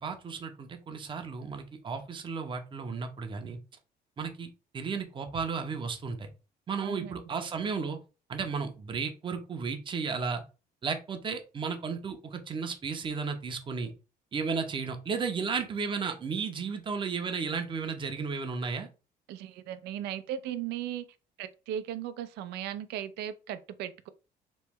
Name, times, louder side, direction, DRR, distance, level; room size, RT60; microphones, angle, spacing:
voice 1, 0.0-3.6 4.2-6.3 6.7-8.0 8.3-10.4 10.8-13.9 14.3-18.9, right 5 dB, 30° right, 0.6 m, -34 dB
voice 2, 6.8-7.5 19.3-21.0 21.4-24.1, right 10 dB, 80° right, 0.4 m, -37 dB
3.0 x 2.2 x 3.4 m
cardioid pair, 110°, 17 cm